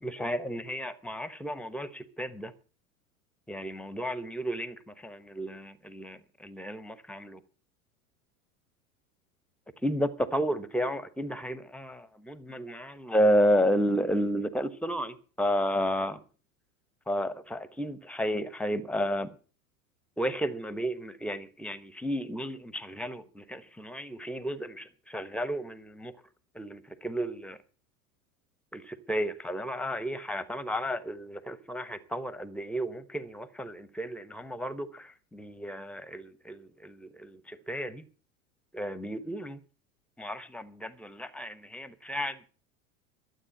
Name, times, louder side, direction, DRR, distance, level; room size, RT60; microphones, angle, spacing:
voice 1, 0.0-2.5 3.5-7.4 9.8-16.2 17.1-19.3 20.2-26.1 26.5-27.6 28.7-38.0 38.7-39.6 40.2-42.5, equal, 5° left, 1.0 m, -32 dB
12.5 x 8.1 x 7.7 m
figure-of-eight pair, 85°, 44 cm